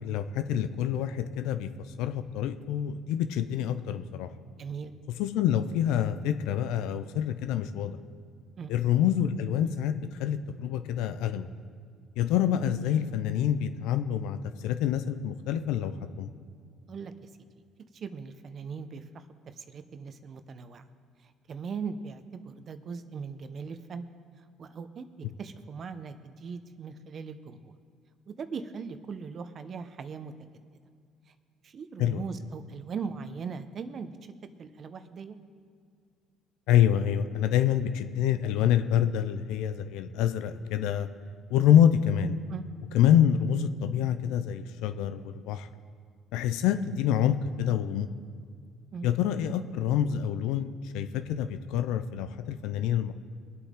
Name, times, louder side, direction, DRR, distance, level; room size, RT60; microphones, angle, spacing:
voice 1, 0.0-4.3 5.2-8.0 8.7-11.5 12.2-16.3 32.0-32.2 36.7-41.1 41.5-42.4 42.9-45.7 46.3-48.1 49.0-53.1, left 10 dB, 80° left, 10 dB, 0.6 m, -26 dB
voice 2, 4.6-4.9 8.6-8.7 16.9-17.3 17.9-19.2 19.6-20.8 21.2-24.0 24.6-27.7 28.3-30.6 31.6-34.3 34.6-35.4 42.5-42.6 48.9-49.1, right 5 dB, 50° right, 10 dB, 0.9 m, -39 dB
22.5 x 8.4 x 3.8 m, 2.2 s
supercardioid pair, 75°, 0 cm